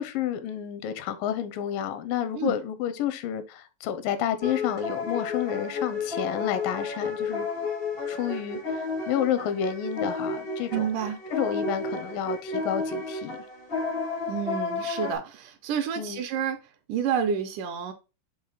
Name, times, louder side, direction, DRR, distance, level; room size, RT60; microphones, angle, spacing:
voice 1, 0.0-7.5 8.1-10.9 11.3-13.4 16.0-16.2, left 9 dB, 85° left, 2.4 m, -30 dB
sound 1, 4.4-15.1, left 3 dB, 70° left, 0.5 m, -32 dB
voice 2, 10.7-11.2 14.3-16.6 16.9-17.9, right 8 dB, 75° right, 2.1 m, -29 dB
6.5 x 3.7 x 3.9 m
omnidirectional pair, 3.9 m